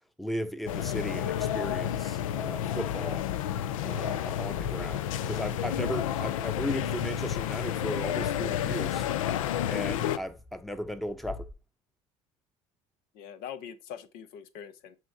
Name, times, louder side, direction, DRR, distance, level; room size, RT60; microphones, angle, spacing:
voice 1, 0.2-3.2 3.8-9.1 9.7-11.5, equal, ahead, 0.8 m, -36 dB
sound 1, 0.7-10.2, left 11 dB, 85° left, 0.4 m, -30 dB
sound 2, 10.4-11.5, left 4 dB, 20° left, 3.7 m, -49 dB
voice 2, 13.1-15.0, left 8 dB, 65° left, 0.8 m, -43 dB
7.5 x 2.9 x 4.8 m
hypercardioid pair, 65°, 17 cm